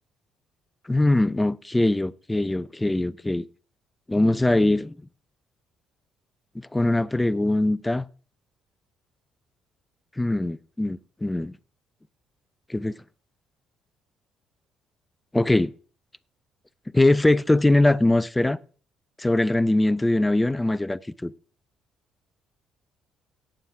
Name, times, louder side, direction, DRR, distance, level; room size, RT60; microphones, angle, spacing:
voice 1, 0.9-3.4 4.1-5.0 6.5-8.0 10.2-11.5 12.7-12.9 15.3-15.7 16.9-18.6 19.2-21.3, left 2 dB, 15° left, 0.6 m, -22 dB
18.0 x 7.2 x 3.6 m
hypercardioid pair, 55°, 0 cm